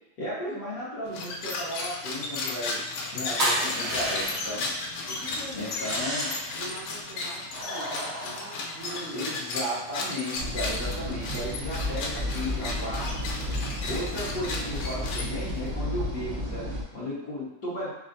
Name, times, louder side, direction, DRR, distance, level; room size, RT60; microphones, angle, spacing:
voice 1, 0.2-2.8 3.1-4.7 5.5-6.3 9.1-13.3 13.8-17.9, left 1 dB, 55° left, -10 dB, 1.1 m, -34 dB
sound 1, 1.1-15.7, left 3 dB, 85° left, 2.2 m, -35 dB
sound 2, 3.4-4.6 5.7-6.6 7.5-9.2, right 1 dB, 30° right, 1.3 m, -31 dB
voice 2, 5.1-5.7 6.6-9.3, right 2 dB, 60° right, -5 dB, 1.6 m, -42 dB
sound 3, 10.3-16.8, left 1 dB, 85° right, 0.9 m, -32 dB
4.8 x 3.8 x 2.6 m, 0.87 s
omnidirectional pair, 3.5 m